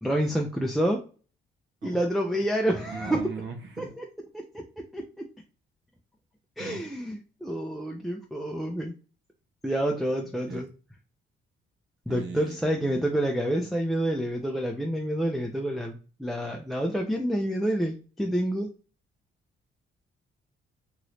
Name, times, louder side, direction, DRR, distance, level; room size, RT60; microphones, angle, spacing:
voice 1, 0.0-1.0 1.8-3.2 3.8-4.0 4.3-4.6 4.9-5.3 6.6-8.9 9.6-10.7 12.1-18.7, right 1 dB, ahead, 1 dB, 0.5 m, -28 dB
voice 2, 2.9-3.9 6.6-6.8 10.5-10.6 12.1-12.6, right 5 dB, 70° right, 5 dB, 0.9 m, -38 dB
3.0 x 2.5 x 3.1 m, 0.38 s
cardioid pair, 90°, 20 cm